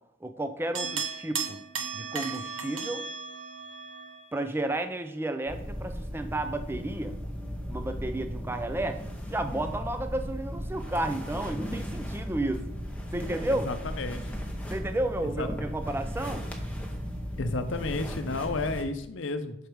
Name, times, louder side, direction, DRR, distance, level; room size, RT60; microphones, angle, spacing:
voice 1, 0.2-1.6 1.9-3.1 4.3-7.2 7.7-9.0 9.3-12.7 13.1-13.7 14.7-16.5, right 1 dB, 10° right, 8 dB, 0.4 m, -32 dB
sound 1, 0.7-4.3, right 5 dB, 80° right, 1.0 m, -35 dB
sound 2, 5.5-18.8, equal, 5° left, 0.9 m, -36 dB
voice 2, 13.5-14.3 15.2-15.5 17.4-19.6, left 3 dB, 70° left, 9 dB, 0.6 m, -32 dB
6.5 x 4.9 x 4.6 m, 0.79 s
head